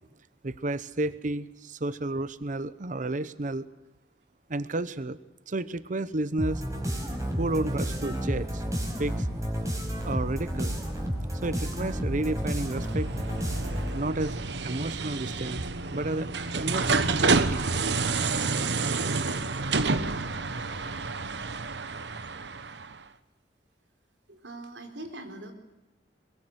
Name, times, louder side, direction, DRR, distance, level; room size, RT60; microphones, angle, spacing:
voice 1, 0.4-3.7 4.5-5.2 5.5-6.6 7.4-8.6 9.0-9.3 10.0-10.8 11.4-13.1 13.9-15.6 15.9-16.3 16.6-17.7, right 2 dB, 45° right, 15 dB, 0.8 m, -31 dB
sound 1, 6.4-14.1, equal, 20° right, 5.2 m, -31 dB
sound 2, 12.3-23.0, right 4 dB, 75° right, 1.2 m, -29 dB
voice 2, 19.9-20.4 24.3-25.5, right 1 dB, 90° right, 6 dB, 4.3 m, -42 dB
23.5 x 22.0 x 8.0 m, 1.0 s
head